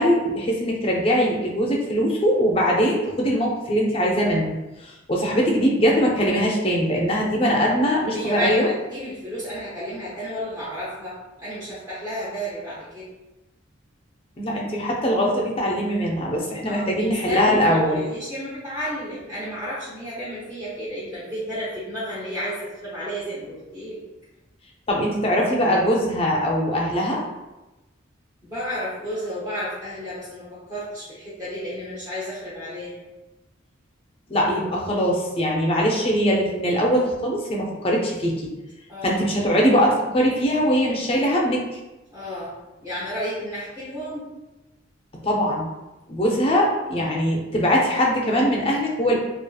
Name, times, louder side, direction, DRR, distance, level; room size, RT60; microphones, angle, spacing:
voice 1, 0.0-4.5 4.8-8.7 14.4-18.0 24.9-27.2 34.3-38.4 39.0-41.6 45.2-45.7 46.1-49.2, equal, 25° left, -2 dB, 0.4 m, -21 dB
voice 2, 8.1-13.1 16.6-24.0 28.4-32.9 38.9-39.2 42.1-44.3 46.9-47.2, equal, 20° right, -12 dB, 0.7 m, -32 dB
2.7 x 2.3 x 2.3 m, 1.0 s
head